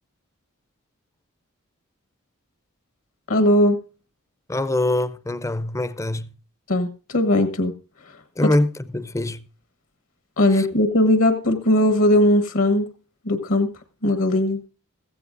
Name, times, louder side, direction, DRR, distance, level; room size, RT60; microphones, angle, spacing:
voice 1, 3.3-3.8 6.7-7.7 8.0-8.6 10.4-12.9 13.2-13.7 14.0-14.6, left 1 dB, 70° left, 1.2 m, -19 dB
voice 2, 4.5-6.3 8.4-9.5, left 1 dB, 15° left, 0.5 m, -24 dB
15.5 x 14.5 x 2.5 m
head